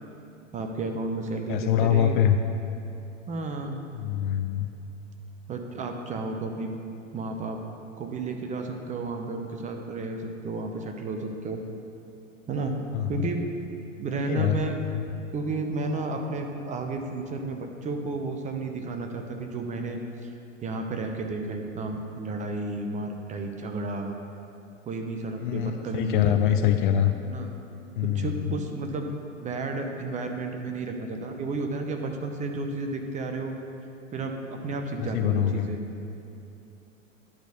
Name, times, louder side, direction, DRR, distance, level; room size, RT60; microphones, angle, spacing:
voice 1, 0.5-2.1 3.3-3.8 5.5-6.7 7.1-7.6 8.0-11.6 12.5-12.8 13.1-13.4 14.0-14.8 15.3-20.3 20.6-24.2 24.9-26.8 27.2-27.5 28.0-29.1 29.4-33.5 34.1-35.8, right 3 dB, 20° right, 4 dB, 0.7 m, -32 dB
voice 2, 1.5-2.4 3.9-4.7 12.9-13.3 14.3-14.6 14.9-15.0 25.4-27.1 28.0-28.5 35.0-35.7, left 10 dB, 45° left, 7 dB, 0.4 m, -24 dB
10.5 x 4.1 x 6.7 m, 2.7 s
figure-of-eight pair, 95°, 38 cm